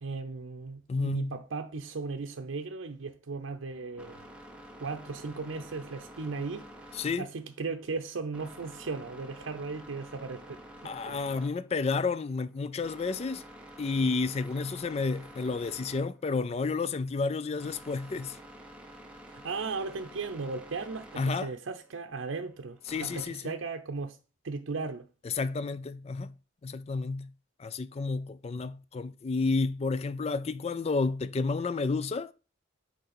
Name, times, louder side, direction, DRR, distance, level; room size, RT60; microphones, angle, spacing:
voice 1, 0.0-4.3 4.8-6.7 7.2-11.2 19.3-24.2 24.4-25.1, right 4 dB, 90° right, 0.6 m, -37 dB
voice 2, 0.9-1.3 6.9-7.3 10.8-13.4 13.8-18.4 21.2-21.5 22.9-23.5 25.2-26.3 26.6-27.3 27.6-32.3, left 4 dB, 30° left, 0.3 m, -31 dB
sound 1, 3.4-23.3, right 1 dB, 5° right, 0.8 m, -50 dB
6.6 x 4.6 x 4.1 m
head